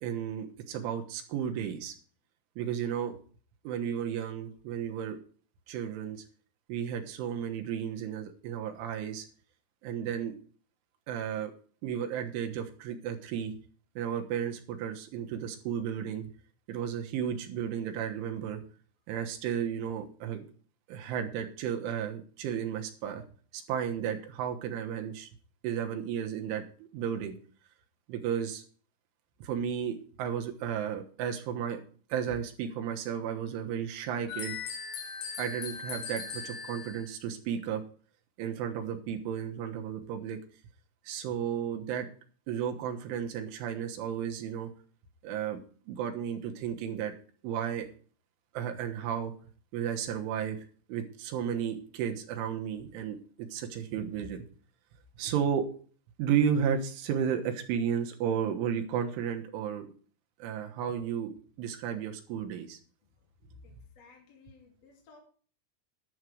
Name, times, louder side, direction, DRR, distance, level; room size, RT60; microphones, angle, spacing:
voice 1, 0.0-2.0 2.6-3.2 3.7-5.2 5.7-6.2 6.7-9.3 9.8-10.4 11.1-11.5 11.8-13.6 14.0-16.2 16.7-18.6 19.1-20.5 20.9-23.2 23.5-25.3 25.6-26.6 26.9-27.3 28.1-28.6 29.4-31.8 32.1-34.6 35.4-37.8 38.4-40.4 41.1-42.1 42.5-44.7 45.2-45.6 45.9-47.1 47.4-47.9 48.6-49.3 49.7-50.6 50.9-53.2 53.5-54.4 55.2-55.7 56.2-59.9 60.4-61.3 61.6-62.8, right 8 dB, 80° right, 4 dB, 3.7 m, -33 dB
sound 1, 34.3-37.1, left 6 dB, 65° left, 3.4 m, -39 dB
voice 2, 63.6-65.2, left 4 dB, 40° left, -1 dB, 2.9 m, -58 dB
11.0 x 6.6 x 6.2 m, 0.43 s
omnidirectional pair, 5.7 m